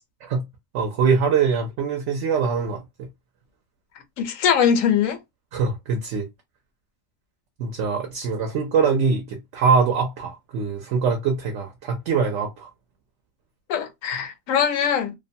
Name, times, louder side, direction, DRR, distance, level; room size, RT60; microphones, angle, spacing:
voice 1, 0.7-2.8 5.5-6.3 7.6-12.7, right 5 dB, 70° right, 0.9 m, -23 dB
voice 2, 4.2-5.2 13.7-15.1, left 8 dB, 80° left, 1.1 m, -21 dB
2.6 x 2.1 x 2.6 m
omnidirectional pair, 1.4 m